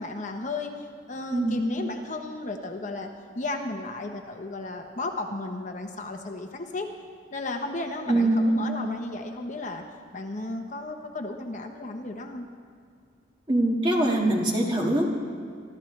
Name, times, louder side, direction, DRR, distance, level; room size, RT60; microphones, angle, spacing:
voice 1, 0.0-3.1 3.3-6.9 7.3-9.8 10.1-12.5, left 2 dB, 40° left, 3 dB, 1.0 m, -34 dB
voice 2, 8.1-8.6 13.5-15.1, right 1 dB, 25° right, -1 dB, 1.8 m, -23 dB
25.0 x 13.0 x 3.3 m, 2.3 s
head